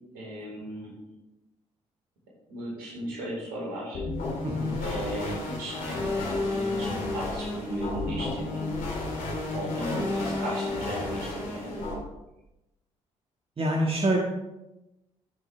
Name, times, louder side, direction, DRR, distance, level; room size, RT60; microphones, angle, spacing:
voice 1, 0.1-1.0 2.5-4.0 4.8-8.8 9.4-11.9, right 1 dB, 70° right, -4 dB, 4.3 m, -36 dB
sound 1, 3.9-11.9, left 2 dB, 60° left, 3.2 m, -31 dB
voice 2, 4.4-4.8 13.6-14.2, right 1 dB, 35° right, -1 dB, 1.8 m, -26 dB
13.5 x 7.4 x 3.5 m, 0.93 s
figure-of-eight pair, 40°, 17 cm